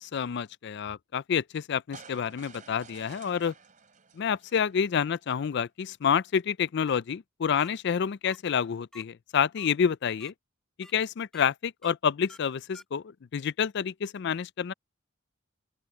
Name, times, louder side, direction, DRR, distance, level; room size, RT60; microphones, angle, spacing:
voice 1, 0.0-3.5 4.2-10.3 10.8-14.7, left 7 dB, 55° left, 0.4 m, -28 dB
sound 1, 1.9-5.2, right 5 dB, 40° right, 3.3 m, -52 dB
sound 2, 6.9-7.0 7.6-7.7 8.3-8.4 8.9-9.0 9.6-9.7 10.2-10.3 10.8-10.9 11.3-11.4 11.8-11.9 12.3-12.4 12.7-12.8, equal, 5° left, 2.2 m, -50 dB
open air
head